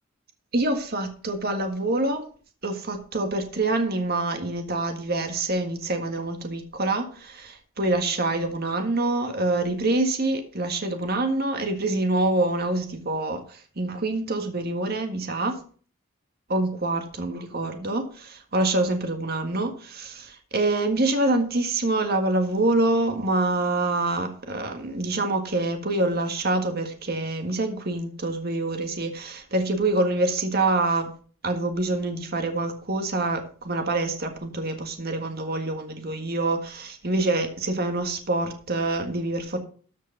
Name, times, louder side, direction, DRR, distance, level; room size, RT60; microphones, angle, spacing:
voice 1, 0.5-2.2 2.6-15.6 16.5-31.1 31.4-39.6, right 2 dB, 50° right, 5 dB, 1.7 m, -26 dB
13.5 x 5.2 x 5.8 m, 0.42 s
head